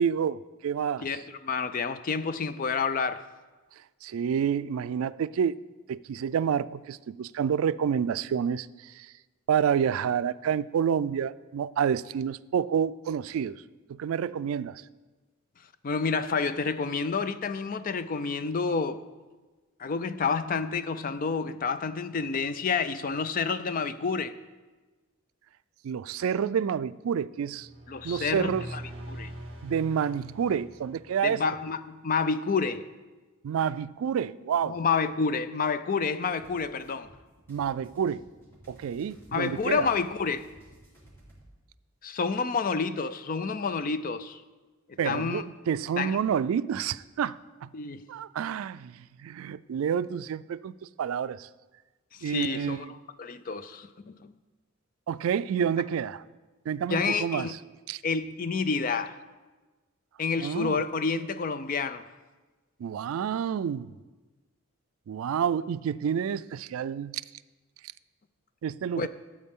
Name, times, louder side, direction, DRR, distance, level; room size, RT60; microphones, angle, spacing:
voice 1, 0.0-1.1 3.8-5.6 5.9-9.1 9.5-13.6 13.9-14.8 25.8-27.7 28.0-28.7 29.6-31.4 33.4-34.8 37.5-38.2 38.7-39.9 45.0-47.7 48.1-51.5 52.2-53.0 55.1-56.2 56.7-57.6 57.9-58.0 60.4-60.8 62.8-64.0 65.1-67.2 68.6-69.1, right 8 dB, 85° right, 0.3 m, -29 dB
voice 2, 1.0-3.3 15.8-19.0 19.8-24.3 27.9-28.8 29.1-29.3 31.2-32.8 34.6-37.1 39.3-40.5 42.0-44.4 45.0-45.4 46.0-46.2 47.7-48.0 52.1-52.9 53.2-54.3 56.9-57.5 58.0-59.2 60.2-62.1 69.0-69.1, left 5 dB, 40° left, 0.4 m, -29 dB
sound 1, 27.5-31.4, right 1 dB, 30° right, 1.5 m, -43 dB
sound 2, 36.3-41.5, right 1 dB, 10° left, 3.0 m, -55 dB
13.5 x 7.5 x 3.7 m
head